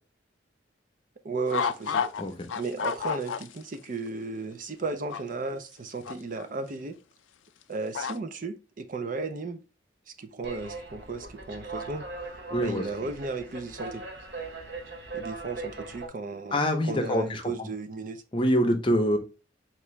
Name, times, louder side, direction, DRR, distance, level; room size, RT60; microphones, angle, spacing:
voice 1, 1.2-2.0 2.6-7.0 7.7-9.6 10.2-12.1 12.5-14.0 15.1-18.2, right 3 dB, 45° right, 0.5 m, -35 dB
sound 1, 1.5-2.2 2.5-3.7 4.1-4.2 5.1-5.2 6.1-6.4 7.9-8.1, left 6 dB, 85° left, 0.4 m, -29 dB
sound 2, 10.4-16.1, right 3 dB, 60° right, 0.9 m, -40 dB
voice 2, 12.5-12.8 16.5-17.7 18.3-19.2, equal, 25° left, 0.7 m, -25 dB
4.5 x 2.9 x 3.1 m
head